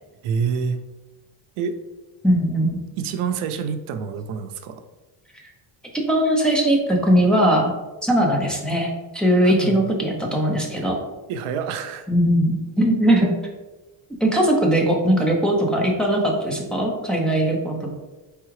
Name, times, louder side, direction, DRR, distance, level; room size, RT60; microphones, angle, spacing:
voice 1, 0.2-0.8 1.6-1.8 3.0-4.8 9.4-9.8 11.3-12.1, right 6 dB, 85° right, 9 dB, 0.6 m, -27 dB
voice 2, 2.2-2.8 5.9-7.7 8.0-11.0 12.1-13.3 14.2-17.9, right 1 dB, ahead, -2 dB, 0.5 m, -20 dB
4.7 x 3.5 x 3.1 m, 1.1 s
cardioid pair, 165°, 49 cm